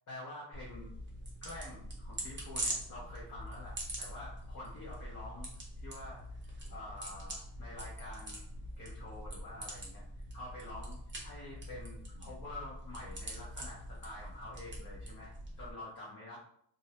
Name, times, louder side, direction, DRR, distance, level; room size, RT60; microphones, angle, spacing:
voice 1, 0.1-0.9 1.4-5.5 5.8-6.4 6.7-10.0 10.3-15.3 15.6-16.4, left 2 dB, 40° left, -5 dB, 0.7 m, -48 dB
sound 1, 0.5-15.7, right 1 dB, 25° right, 0.6 m, -44 dB
2.4 x 2.0 x 2.8 m, 0.67 s
wide cardioid pair, 145°, 48 cm